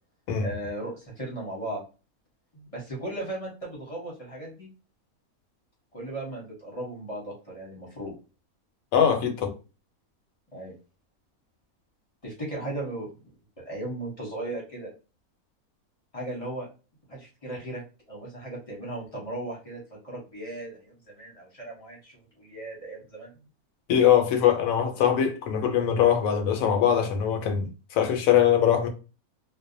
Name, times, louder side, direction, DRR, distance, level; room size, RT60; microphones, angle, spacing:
voice 1, 0.4-1.8 2.5-4.7 5.9-8.1 10.5-10.7 12.2-13.1 13.6-14.9 16.1-16.7 17.1-17.8 18.1-23.3, right 1 dB, 30° left, 0.7 m, -36 dB
voice 2, 8.9-9.5 23.9-28.9, left 9 dB, 75° left, 1.0 m, -22 dB
2.6 x 2.1 x 2.5 m
omnidirectional pair, 1.5 m